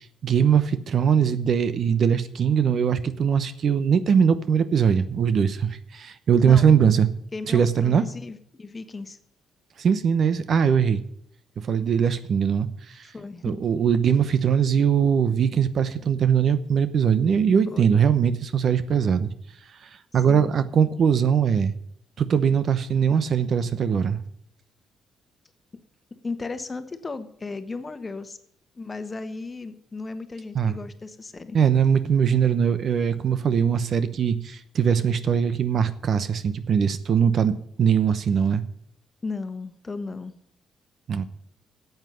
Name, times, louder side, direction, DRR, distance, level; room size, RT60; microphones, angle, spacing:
voice 1, 0.0-7.1 7.5-8.0 9.8-11.0 11.6-13.1 13.4-19.3 20.1-21.7 22.2-24.2 30.5-30.7 31.5-38.6 41.1-41.2, right 7 dB, 55° right, 13 dB, 0.9 m, -21 dB
voice 2, 6.4-6.7 7.3-9.2 13.0-13.6 17.7-17.9 20.3-20.5 26.2-28.4 28.7-31.6 39.2-40.3, left 3 dB, 25° left, 10 dB, 1.2 m, -35 dB
8.9 x 8.1 x 9.4 m, 0.67 s
cardioid pair, 90°, 0 cm